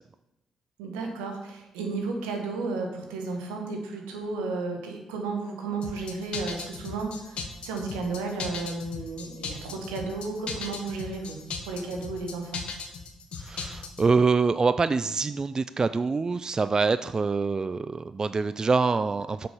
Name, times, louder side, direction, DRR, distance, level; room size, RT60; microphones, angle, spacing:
voice 1, 0.8-12.6, right 3 dB, 80° right, 2 dB, 1.4 m, -33 dB
sound 1, 5.8-14.1, left 5 dB, 60° left, 1.1 m, -37 dB
voice 2, 13.4-19.5, right 4 dB, 35° right, 13 dB, 0.3 m, -25 dB
6.8 x 6.8 x 5.4 m, 0.94 s
hypercardioid pair, 40°, 2 cm